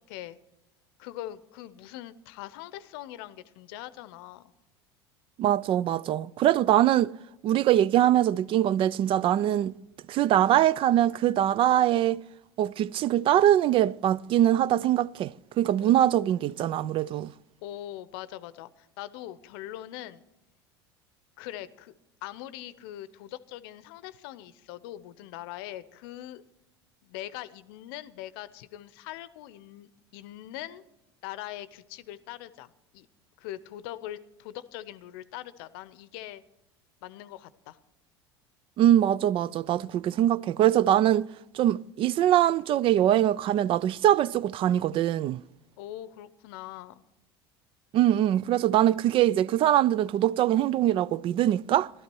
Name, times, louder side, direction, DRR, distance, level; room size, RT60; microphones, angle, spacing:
voice 1, 0.1-0.4 1.0-4.5 15.8-15.9 16.5-16.7 17.6-20.2 21.4-21.9 22.2-26.4 27.0-30.8 31.2-33.1 33.4-36.4 37.0-37.8 45.8-47.0, left 13 dB, 65° left, 0.7 m, -42 dB
voice 2, 5.4-7.1 7.4-9.8 10.1-12.2 12.6-17.3 38.8-41.3 41.5-45.4 47.9-51.9, right 12 dB, 40° right, 0.4 m, -23 dB
15.0 x 12.0 x 4.6 m
hypercardioid pair, 75°, 13 cm